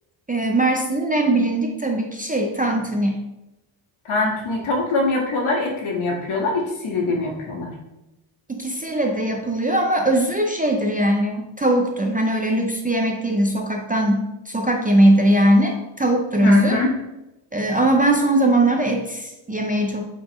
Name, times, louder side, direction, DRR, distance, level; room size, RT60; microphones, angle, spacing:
voice 1, 0.3-3.2 8.5-16.8 17.5-20.0, right 1 dB, 20° right, 1 dB, 0.4 m, -20 dB
voice 2, 4.1-7.7 16.4-16.9, left 2 dB, 75° left, -1 dB, 1.7 m, -23 dB
7.9 x 4.4 x 3.0 m, 0.97 s
wide cardioid pair, 175°, 49 cm